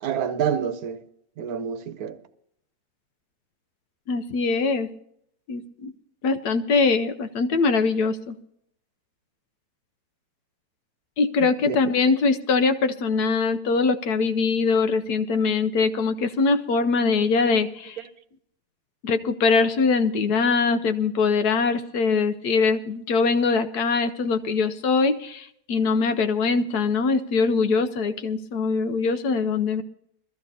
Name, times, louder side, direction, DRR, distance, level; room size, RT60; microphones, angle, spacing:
voice 1, 0.0-1.0 1.4-2.2 11.7-11.8 18.0-18.1, right 8 dB, 65° right, 1.2 m, -27 dB
voice 2, 4.1-4.9 5.5-5.9 6.2-8.4 11.2-18.0 19.0-29.8, left 4 dB, 75° left, 1.2 m, -22 dB
22.0 x 14.0 x 2.7 m
omnidirectional pair, 1.7 m